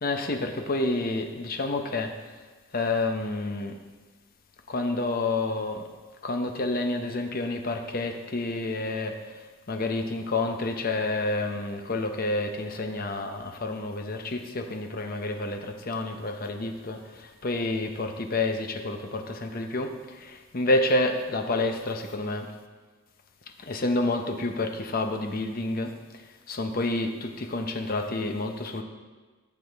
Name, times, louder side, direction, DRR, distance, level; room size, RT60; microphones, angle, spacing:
voice 1, 0.0-2.3 2.7-3.8 4.7-5.9 6.2-22.5 23.6-26.0 26.5-28.8, left 2 dB, 45° left, 5 dB, 0.8 m, -29 dB
13.5 x 6.9 x 3.5 m, 1.3 s
head